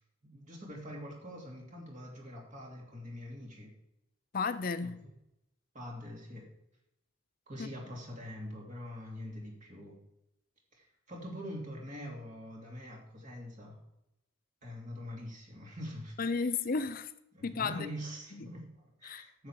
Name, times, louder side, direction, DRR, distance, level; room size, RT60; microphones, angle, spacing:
voice 1, 0.2-3.7 4.8-5.1 5.7-6.5 7.5-10.0 10.7-13.8 14.6-16.5 17.3-19.5, equal, 35° right, 2.7 m, -44 dB
voice 2, 4.3-5.0 7.6-7.7 16.2-17.1 17.4-17.9 18.3-18.5 19.0-19.3, left 4 dB, 40° left, 0.5 m, -33 dB
9.8 x 7.5 x 4.7 m
head